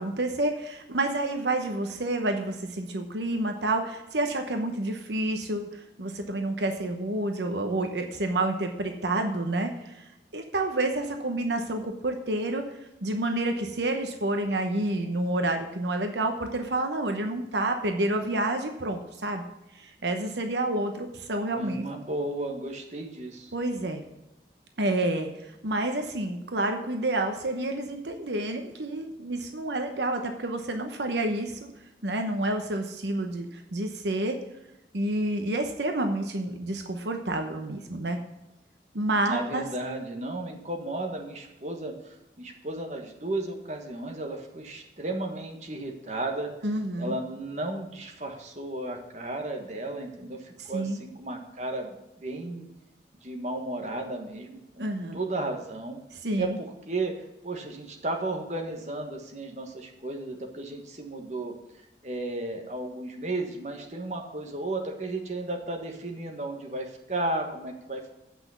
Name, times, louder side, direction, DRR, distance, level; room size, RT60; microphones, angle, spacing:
voice 1, 0.0-12.6 13.0-19.4 19.7-21.8 23.5-24.0 24.8-31.7 32.0-34.4 34.9-38.2 38.9-39.7 46.6-47.2 50.6-51.0 54.8-55.2 56.1-56.6, right 2 dB, 80° right, 5 dB, 1.0 m, -29 dB
voice 2, 21.5-23.5 39.2-46.5 47.0-52.7 53.2-54.9 55.1-56.0 56.4-57.1 57.4-61.5 62.0-68.1, right 2 dB, 40° right, 3 dB, 1.4 m, -34 dB
8.7 x 5.9 x 6.9 m, 0.93 s
head